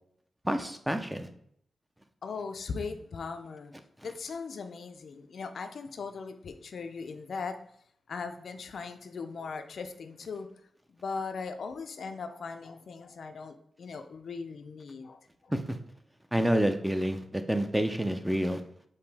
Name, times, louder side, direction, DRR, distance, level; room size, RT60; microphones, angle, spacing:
voice 1, 0.4-1.3 15.5-15.8 16.3-18.6, right 1 dB, 5° right, 7 dB, 0.5 m, -28 dB
voice 2, 2.2-3.7 4.0-7.6 8.1-10.5 10.9-15.5, left 5 dB, 70° left, 8 dB, 0.4 m, -39 dB
4.9 x 2.6 x 3.4 m, 0.66 s
cardioid pair, 85°, 0 cm